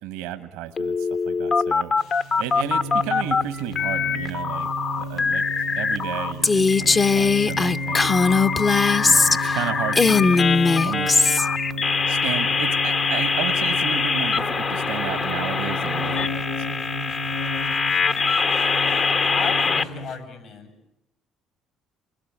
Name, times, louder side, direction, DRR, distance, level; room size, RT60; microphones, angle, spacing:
voice 1, 0.0-1.9 2.4-4.7 5.0-5.4 5.8-8.4 9.0-10.5 10.8-11.3 12.1-16.6, right 11 dB, 85° right, 11 dB, 1.3 m, -33 dB
sound 1, 0.8-3.4 3.7-6.3 6.7-19.8, left 5 dB, 50° left, 1.5 m, -24 dB
sound 2, 2.0-20.2, equal, 85° left, 2.1 m, -33 dB
Female speech woman speaking, 6.4-9.6 9.9-11.5, left 4 dB, 30° left, 1.0 m, -19 dB
voice 2, 19.3-20.7, left 6 dB, 65° left, 8 dB, 8.0 m, -33 dB
28.0 x 21.5 x 8.8 m, 0.84 s
supercardioid pair, 70°, 0 cm